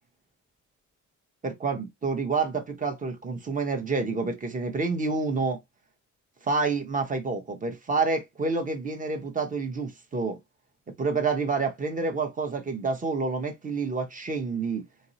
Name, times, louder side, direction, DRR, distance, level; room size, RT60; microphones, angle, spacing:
voice 1, 1.4-5.6 6.4-10.4 11.0-14.9, right 4 dB, 25° right, 0.8 m, -28 dB
2.6 x 2.0 x 2.6 m
cardioid pair, 90°, 30 cm